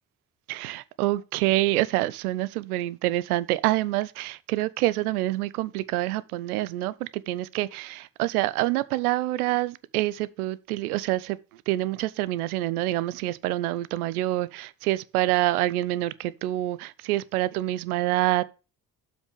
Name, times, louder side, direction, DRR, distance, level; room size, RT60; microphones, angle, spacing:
voice 1, 0.5-11.4 11.7-18.4, right 16 dB, 70° right, 0.6 m, -26 dB
7.4 x 6.0 x 4.7 m
figure-of-eight pair, 45°, 46 cm